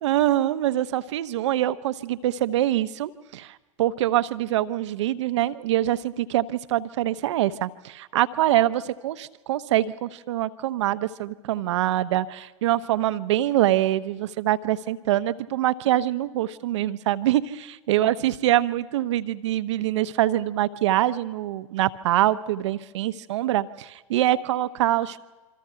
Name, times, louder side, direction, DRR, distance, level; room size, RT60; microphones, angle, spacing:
voice 1, 0.0-25.2, right 13 dB, 55° right, 13 dB, 1.0 m, -24 dB
26.5 x 25.0 x 5.8 m, 1.2 s
figure-of-eight pair, 100°, 17 cm